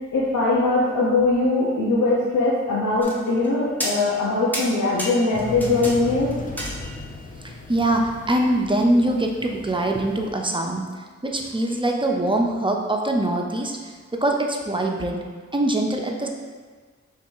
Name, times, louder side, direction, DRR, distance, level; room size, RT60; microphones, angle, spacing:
voice 1, 0.1-6.3, left 2 dB, 85° left, -6 dB, 0.6 m, -21 dB
sound 1, 3.0-3.5 3.8-4.3 4.5-6.0 6.3-7.2 8.3-8.4, equal, 5° left, 0.9 m, -31 dB
sound 2, 5.3-10.3, left 2 dB, 30° left, 0.5 m, -37 dB
voice 2, 7.4-10.8 11.2-13.8 14.2-15.2 15.5-16.3, right 1 dB, 15° right, 1 dB, 0.6 m, -23 dB
3.2 x 2.8 x 4.5 m, 1.5 s
cardioid pair, 50°, 29 cm